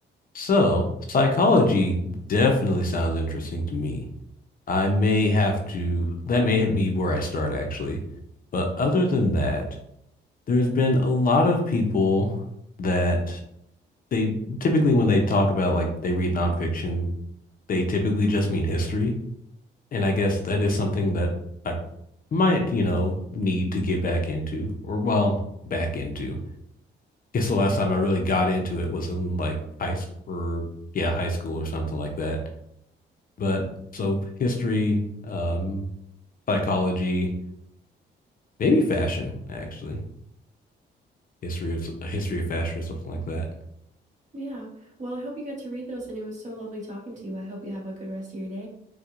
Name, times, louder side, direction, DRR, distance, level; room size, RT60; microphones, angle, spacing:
voice 1, 0.3-2.0 2.3-4.0 4.7-8.0 8.5-9.6 10.5-12.4 12.8-13.4 14.1-17.1 17.7-19.1 19.9-21.3 21.6-21.7 22.3-25.4 25.7-26.4 27.3-29.5 29.8-30.6 30.9-32.4 33.4-33.6 33.9-35.9 36.5-37.3 38.6-40.0 41.4-43.5, left 2 dB, 45° left, 2 dB, 0.7 m, -24 dB
voice 2, 44.3-48.7, right 1 dB, 35° right, -3 dB, 1.5 m, -35 dB
4.4 x 2.3 x 2.5 m, 0.75 s
cardioid pair, 90°, 20 cm